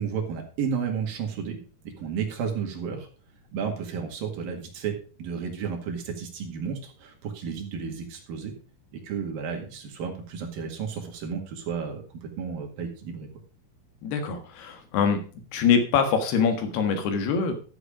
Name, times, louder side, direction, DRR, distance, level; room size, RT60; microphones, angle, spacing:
voice 1, 0.0-1.6 1.8-3.1 3.5-8.5 8.9-13.3, right 6 dB, 65° right, 2 dB, 3.7 m, -32 dB
voice 2, 14.0-15.2 15.5-17.5, left 6 dB, 90° left, 7 dB, 3.8 m, -24 dB
13.0 x 7.2 x 5.0 m, 0.38 s
omnidirectional pair, 4.5 m